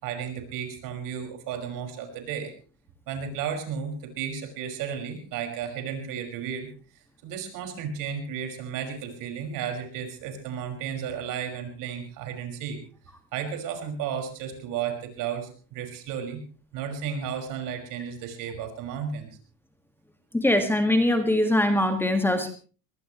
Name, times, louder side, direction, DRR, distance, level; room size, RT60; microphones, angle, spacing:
voice 1, 0.0-2.5 3.1-6.7 7.2-12.8 13.3-16.4 16.7-19.3, right 7 dB, 55° right, 5 dB, 5.8 m, -33 dB
voice 2, 20.3-22.5, left 1 dB, 5° left, 6 dB, 1.9 m, -22 dB
22.5 x 19.5 x 3.1 m, 0.38 s
supercardioid pair, 135°, 38 cm